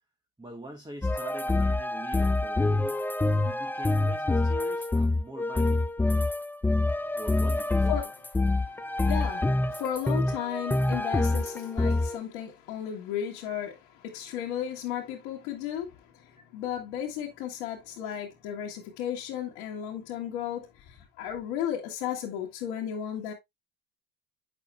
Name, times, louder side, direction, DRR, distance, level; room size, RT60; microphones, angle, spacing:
voice 1, 0.4-3.0 3.4-5.9 7.1-7.9, right 1 dB, 10° right, 1.5 m, -43 dB
sound 1, 1.0-12.2, left 2 dB, 5° left, 0.4 m, -26 dB
voice 2, 6.9-7.2 7.9-8.1 8.5-23.3, left 10 dB, 85° left, 1.8 m, -35 dB
8.5 x 6.8 x 2.2 m
supercardioid pair, 80°, 39 cm